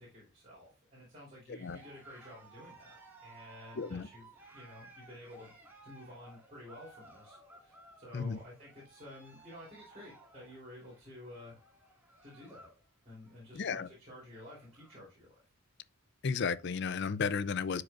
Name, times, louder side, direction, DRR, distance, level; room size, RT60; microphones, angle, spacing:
voice 1, 0.0-4.3 4.5-5.5 5.8-11.6 12.2-12.7 13.0-15.4, left 1 dB, 30° right, 3.5 m, -52 dB
Cheering, 1.5-12.8 13.1-13.5 13.9-14.0 14.2-15.1, right 2 dB, 10° right, 2.0 m, -58 dB
voice 2, 3.8-4.1 8.1-8.4 13.5-13.9 16.2-17.8, left 5 dB, 50° left, 0.5 m, -33 dB
12.0 x 4.9 x 2.5 m
head